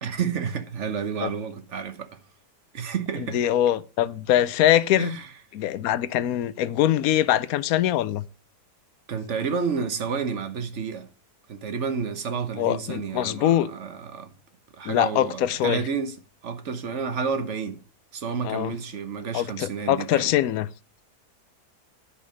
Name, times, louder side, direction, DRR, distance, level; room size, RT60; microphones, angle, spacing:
voice 1, 0.0-2.2 2.7-3.4 5.0-5.3 9.1-11.1 11.5-14.3 14.7-16.1 16.4-17.8 18.1-20.3, right 6 dB, 50° right, 1.2 m, -30 dB
voice 2, 3.2-5.2 5.5-8.2 12.6-13.7 14.8-15.8 18.4-18.7 19.3-20.7, left 12 dB, 65° left, 1.0 m, -23 dB
10.0 x 5.2 x 6.2 m
omnidirectional pair, 1.8 m